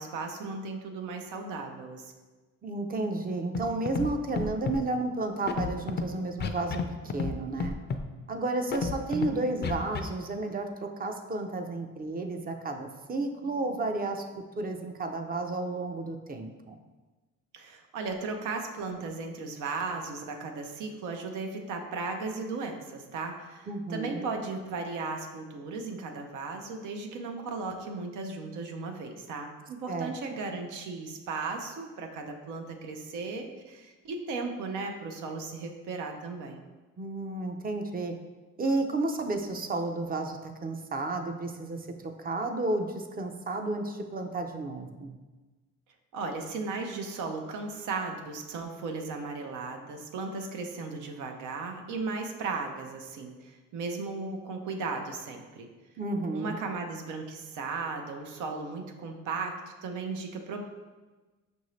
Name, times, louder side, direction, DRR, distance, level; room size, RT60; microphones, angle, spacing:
voice 1, 0.0-2.0 9.1-9.6 17.5-36.6 46.1-55.7 56.3-59.6 59.8-60.6, right 4 dB, 85° right, 3 dB, 0.6 m, -36 dB
voice 2, 2.6-6.8 7.1-7.8 8.3-14.2 14.6-16.8 23.7-24.3 29.9-30.1 37.0-38.1 38.6-45.2 56.0-56.6, right 2 dB, 30° right, 5 dB, 0.5 m, -32 dB
Scratching (performance technique), 3.5-3.6 3.9-4.1 4.3-4.8 5.5-6.0 6.4-6.8 7.1-7.3 7.6-8.0 8.7-9.3 9.6-10.0, left 5 dB, 35° left, 0.4 m, -30 dB
5.6 x 2.6 x 3.1 m, 1.2 s
cardioid pair, 90°, 30 cm